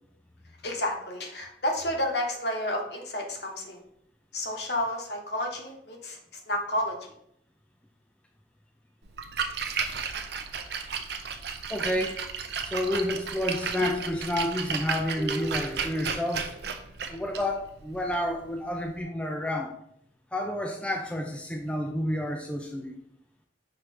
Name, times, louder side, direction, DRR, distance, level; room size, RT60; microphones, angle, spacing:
voice 1, 0.6-3.8 4.3-6.2 6.5-7.0, left 1 dB, 60° left, 1 dB, 1.2 m, -30 dB
Splash splatter, 9.1-19.0, right 6 dB, 55° right, 0.5 m, -34 dB
voice 2, 11.7-12.2 12.6-16.5 17.1-19.7 20.3-23.0, left 1 dB, 5° left, 2 dB, 0.4 m, -30 dB
6.0 x 3.2 x 4.9 m, 0.73 s
head